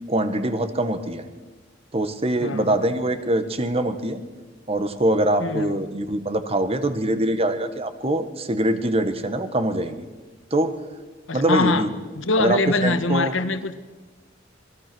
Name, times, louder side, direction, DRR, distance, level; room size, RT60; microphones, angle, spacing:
voice 1, 0.1-1.2 1.9-4.2 4.7-10.0 10.5-10.8 11.3-11.9 12.4-13.3, right 1 dB, 30° right, 10 dB, 1.5 m, -23 dB
voice 2, 2.4-2.7 5.4-5.7 11.3-11.9 12.2-13.8, left 3 dB, 85° left, 10 dB, 1.5 m, -23 dB
26.0 x 20.5 x 6.2 m, 1.3 s
head